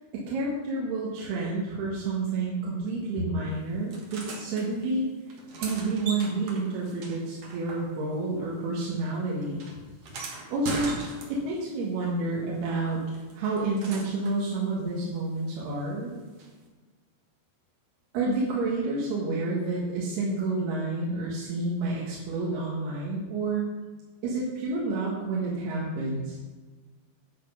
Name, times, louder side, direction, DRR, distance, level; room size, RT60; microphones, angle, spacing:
voice 1, 0.1-5.0 5.6-9.6 10.5-10.9 11.3-13.0 13.3-16.1 18.1-23.7 24.2-26.4, right 3 dB, 65° right, -5 dB, 3.3 m, -29 dB
sound 1, 3.9-4.7 5.3-8.2 8.5-11.7 13.1-14.4 16.4-16.5, right 2 dB, 85° right, 1.3 m, -40 dB
9.3 x 8.8 x 5.5 m, 1.3 s
omnidirectional pair, 5.4 m